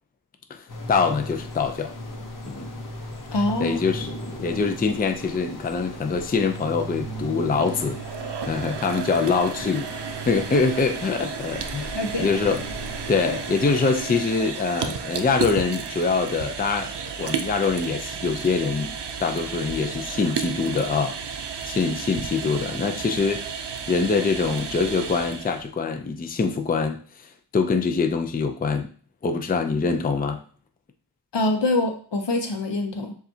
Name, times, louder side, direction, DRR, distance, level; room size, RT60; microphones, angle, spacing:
voice 1, 0.5-1.9 2.4-2.7 3.6-4.1 4.4-8.0 8.5-12.6 13.1-16.9 17.2-23.5 23.9-28.9 29.2-30.4, left 4 dB, 20° left, 6 dB, 0.4 m, -24 dB
sound 1, 0.7-14.0, right 1 dB, 50° left, 0.8 m, -37 dB
voice 2, 3.3-3.8 11.9-12.4 31.3-33.1, left 2 dB, 80° left, 5 dB, 0.8 m, -24 dB
sound 2, 7.5-25.7, right 6 dB, 70° right, 0.5 m, -33 dB
6.9 x 2.4 x 2.7 m, 0.42 s
wide cardioid pair, 75°, 42 cm